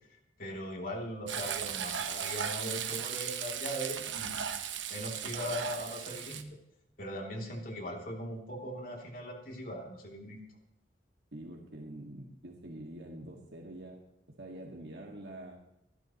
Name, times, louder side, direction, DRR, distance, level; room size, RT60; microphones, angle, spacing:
voice 1, 0.1-4.5 4.9-6.4 7.0-10.4, equal, 50° left, 0 dB, 3.0 m, -40 dB
Frying (food), 1.3-6.4, right 8 dB, 85° right, 1.2 m, -37 dB
voice 2, 11.3-14.0 14.4-15.6, right 1 dB, 65° right, 0 dB, 2.0 m, -45 dB
25.5 x 12.0 x 3.1 m, 0.83 s
head